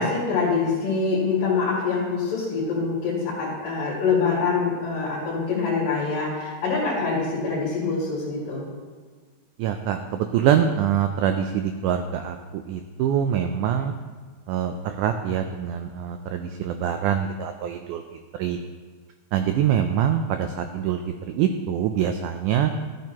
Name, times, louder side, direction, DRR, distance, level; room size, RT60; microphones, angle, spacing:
voice 1, 0.0-8.7, left 4 dB, 75° left, -8 dB, 3.7 m, -25 dB
voice 2, 9.6-13.9 14.5-18.0 18.3-18.6 19.3-21.0 21.3-22.7, right 9 dB, 90° right, 6 dB, 1.7 m, -24 dB
14.0 x 8.9 x 2.9 m, 1.5 s
omnidirectional pair, 4.1 m